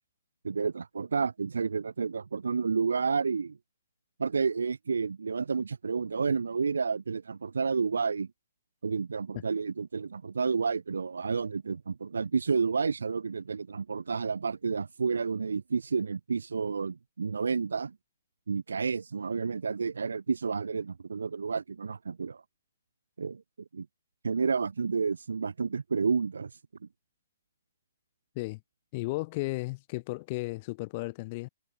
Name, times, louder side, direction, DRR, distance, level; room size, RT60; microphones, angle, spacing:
voice 1, 0.4-3.6 4.2-8.3 8.8-17.9 18.5-22.4 23.2-23.4 23.7-23.9 24.2-26.5, right 5 dB, 90° right, 0.7 m, -30 dB
voice 2, 28.9-31.5, left 23 dB, 35° left, 1.8 m, -34 dB
hypercardioid pair, 155°, 0 cm